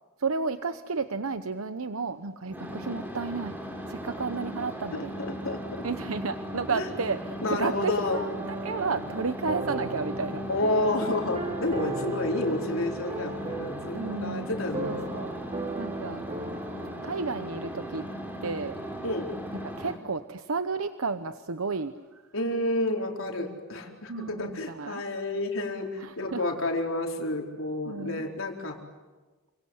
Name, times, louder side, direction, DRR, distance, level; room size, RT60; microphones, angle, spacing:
voice 1, 0.2-3.5 3.9-5.1 5.8-10.4 13.9-14.5 14.8-16.2 17.0-18.0 18.4-18.8 19.8-22.2 24.1-25.1 26.0-26.5 27.9-28.2, right 4 dB, 90° right, 10 dB, 1.0 m, -32 dB
sound 1, 2.5-19.9, equal, 10° right, 3.8 m, -37 dB
voice 2, 4.9-5.6 6.7-6.9 7.4-8.2 10.5-15.1 19.0-19.3 22.3-28.8, left 2 dB, 70° left, 1 dB, 4.5 m, -30 dB
sound 2, 8.4-17.0, right 1 dB, 30° right, 2.8 m, -37 dB
29.0 x 25.5 x 8.0 m, 1.3 s
head